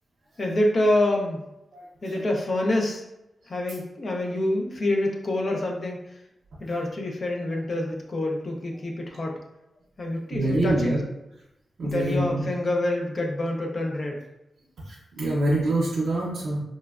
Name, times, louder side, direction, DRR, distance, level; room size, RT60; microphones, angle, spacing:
voice 1, 0.4-1.5 2.0-3.0 3.5-6.2 6.6-9.4 10.0-10.9 11.8-14.2, left 1 dB, 45° left, 0 dB, 0.4 m, -26 dB
voice 2, 1.7-2.1 10.3-11.0 11.8-12.4 14.9-16.6, right 1 dB, 85° right, -6 dB, 0.6 m, -25 dB
3.1 x 2.2 x 2.3 m, 0.89 s
wide cardioid pair, 135°, 0 cm